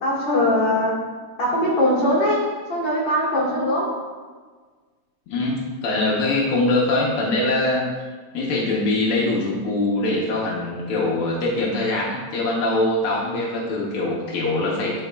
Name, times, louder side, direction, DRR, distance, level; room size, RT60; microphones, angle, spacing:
voice 1, 0.0-1.0 1.4-3.9, left 1 dB, 45° left, -6 dB, 1.9 m, -21 dB
voice 2, 5.3-7.8 8.3-15.0, left 2 dB, 75° left, -4 dB, 1.2 m, -23 dB
11.0 x 4.0 x 2.2 m, 1.5 s
omnidirectional pair, 3.6 m